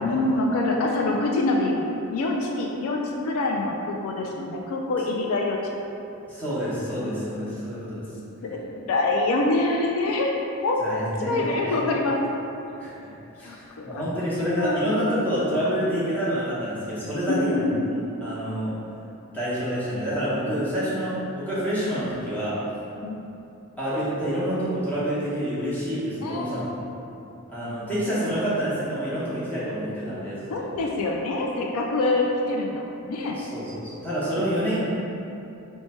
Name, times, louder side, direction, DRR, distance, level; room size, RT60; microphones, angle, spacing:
voice 1, 0.0-5.6 8.4-10.8 11.2-12.2 13.4-14.0 14.4-14.9 17.3-17.8 23.0-23.2 26.2-26.7 30.5-33.4, left 2 dB, 75° left, 0 dB, 0.3 m, -25 dB
voice 2, 6.3-8.0 10.8-11.8 12.8-12.9 13.3-17.6 18.2-18.8 19.3-22.6 23.8-26.6 27.5-30.7 33.3-34.8, equal, 10° left, -11 dB, 0.9 m, -27 dB
3.1 x 2.2 x 4.2 m, 2.8 s
head